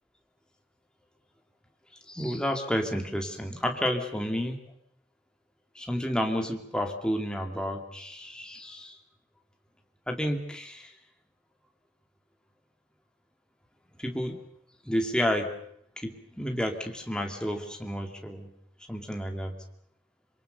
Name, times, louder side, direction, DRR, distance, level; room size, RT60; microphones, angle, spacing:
voice 1, 2.1-4.6 5.8-9.0 10.1-10.9 14.0-14.4 14.8-15.5 16.0-18.5 18.9-19.5, equal, 5° left, 3 dB, 2.3 m, -30 dB
26.0 x 23.0 x 6.7 m, 0.69 s
head